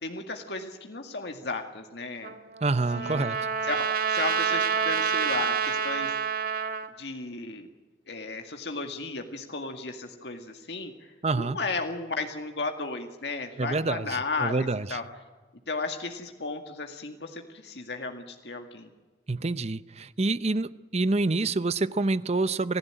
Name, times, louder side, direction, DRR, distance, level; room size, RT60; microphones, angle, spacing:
voice 1, 0.0-2.3 2.9-3.2 3.6-6.1 7.0-7.7 8.1-15.0 15.7-18.9, left 3 dB, 70° left, 4 dB, 2.1 m, -34 dB
Trumpet, 2.2-6.9, right 6 dB, 55° right, 1.6 m, -28 dB
voice 2, 2.6-3.4 11.2-11.6 13.6-15.0 19.3-22.8, right 3 dB, 35° right, 16 dB, 0.7 m, -27 dB
27.0 x 15.5 x 9.0 m, 1.3 s
head